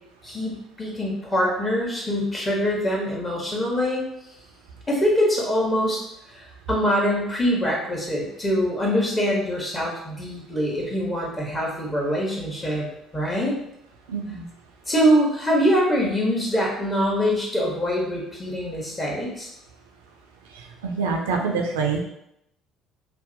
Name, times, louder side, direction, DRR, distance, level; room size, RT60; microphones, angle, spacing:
voice 1, 0.2-4.0 4.9-6.0 6.3-12.9 13.1-13.5 14.9-19.5, equal, 25° left, -3 dB, 1.0 m, -24 dB
voice 2, 14.1-14.5 20.8-22.0, right 4 dB, 80° right, 2 dB, 0.3 m, -25 dB
2.6 x 2.1 x 2.6 m, 0.79 s
hypercardioid pair, 60°, 0 cm